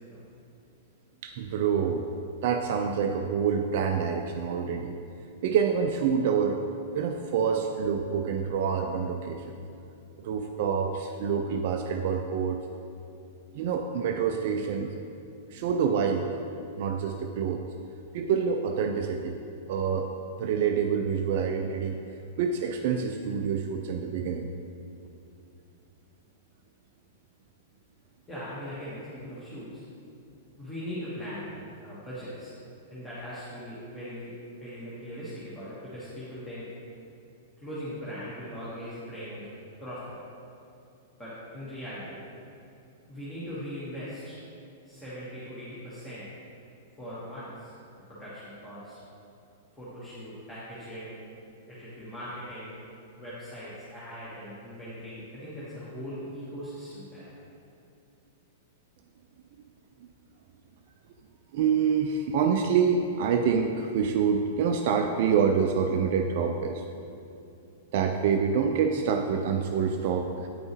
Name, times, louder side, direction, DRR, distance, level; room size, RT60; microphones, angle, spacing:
voice 1, 1.2-2.0 2.4-5.0 5.4-6.6 6.9-9.6 10.2-12.6 13.5-14.9 15.5-16.3 16.8-17.7 18.1-19.4 19.7-20.1 20.4-22.0 22.4-24.5 61.5-66.8 67.9-70.5, right 6 dB, 50° right, 4 dB, 0.3 m, -27 dB
voice 2, 28.3-29.8 30.6-31.5 31.8-32.5 32.9-34.3 34.6-36.7 37.6-39.5 39.8-40.0 41.2-42.2 43.1-44.4 44.8-46.3 47.0-47.7 48.1-49.0 49.8-51.3 51.7-52.8 53.1-57.3, equal, 10° left, -10 dB, 1.4 m, -40 dB
8.6 x 5.3 x 3.1 m, 2.7 s
figure-of-eight pair, 100°, 0 cm